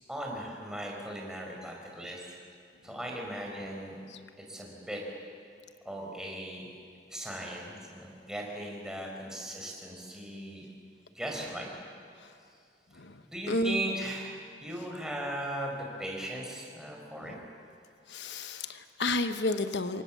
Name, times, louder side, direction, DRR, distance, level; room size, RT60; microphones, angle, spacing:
voice 1, 0.1-2.4 2.8-4.0 4.5-5.0 5.8-6.7 7.1-10.7 11.1-11.7 13.3-14.3 14.6-17.4, right 1 dB, 5° right, -1 dB, 4.5 m, -38 dB
voice 2, 13.5-13.9 17.2-17.4 18.1-20.0, left 2 dB, 75° left, 9 dB, 1.0 m, -31 dB
28.0 x 24.5 x 7.3 m, 2.4 s
head